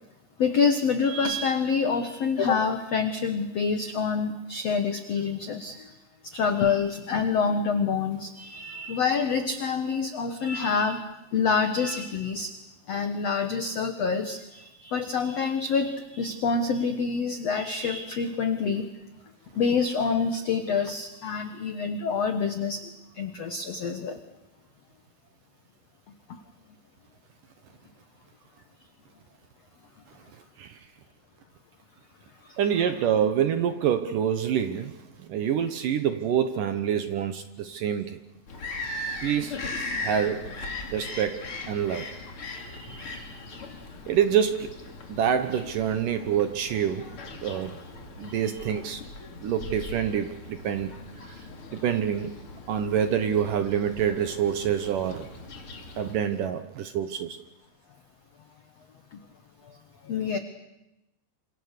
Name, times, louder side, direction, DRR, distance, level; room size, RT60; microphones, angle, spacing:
voice 1, 0.4-5.9 6.2-11.0 11.3-12.5 12.9-18.8 19.5-22.9 23.2-24.2 32.4-32.6 42.5-43.8 59.1-59.2 59.6-59.8 60.0-60.4, left 5 dB, 80° left, 8 dB, 1.4 m, -27 dB
voice 2, 32.6-38.2 39.2-39.6 40.0-40.5 40.9-42.1 44.1-44.8 45.1-47.1 47.4-47.8 48.2-49.0 49.4-50.9 51.3-51.4 51.7-52.3 52.7-55.3 56.0-57.4, right 8 dB, 70° right, 9 dB, 2.2 m, -26 dB
Bird vocalization bird call bird song, 38.5-56.1, left 2 dB, 35° left, 3.0 m, -39 dB
27.5 x 27.0 x 6.7 m, 0.93 s
omnidirectional pair, 4.9 m